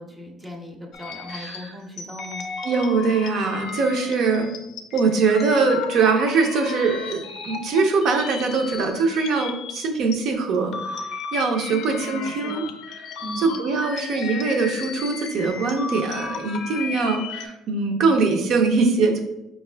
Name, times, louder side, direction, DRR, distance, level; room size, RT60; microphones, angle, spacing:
voice 1, 0.0-2.5 11.7-12.7 13.2-13.5, equal, 10° right, 1 dB, 0.6 m, -37 dB
sound 1, 0.9-10.2 10.5-17.5, left 6 dB, 65° left, 0.4 m, -35 dB
voice 2, 2.6-4.5 4.9-10.7 11.3-12.7 13.4-19.2, right 4 dB, 60° right, 4 dB, 0.6 m, -22 dB
4.7 x 2.4 x 3.3 m, 0.88 s
cardioid pair, 115°, 0 cm